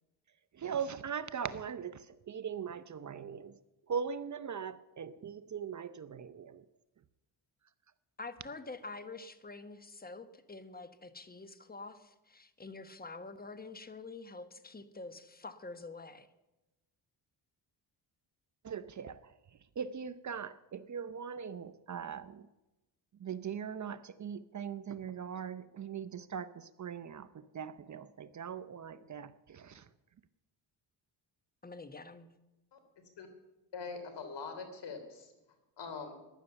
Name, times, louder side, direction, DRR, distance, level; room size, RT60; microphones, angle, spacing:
voice 1, 0.5-3.5 3.9-6.6 18.6-19.3 19.8-22.4 23.2-29.8, right 7 dB, 40° right, 0.7 m, -40 dB
voice 2, 8.2-16.3 31.6-32.3, left 3 dB, 20° left, 1.3 m, -47 dB
voice 3, 33.7-35.3 35.8-36.2, left 5 dB, 65° left, 3.4 m, -43 dB
15.0 x 11.0 x 7.0 m
cardioid pair, 90°, 45 cm